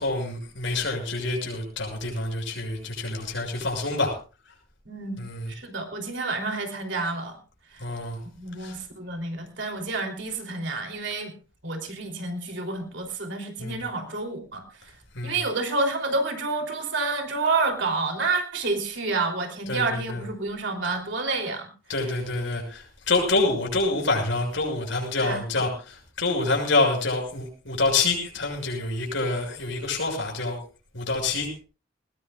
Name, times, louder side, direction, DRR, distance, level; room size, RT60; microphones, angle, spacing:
voice 1, 0.0-4.1 5.2-5.5 7.8-8.2 8.6-8.8 13.6-13.8 15.1-15.4 19.7-20.2 21.9-30.6 30.9-31.5, left 3 dB, 75° left, 2 dB, 6.7 m, -27 dB
voice 2, 4.8-5.2 5.5-7.4 7.7-7.8 8.4-11.3 11.6-14.9 15.2-21.7 25.2-25.6, right 3 dB, 65° right, 3 dB, 3.2 m, -29 dB
20.0 x 20.0 x 2.4 m, 0.35 s
head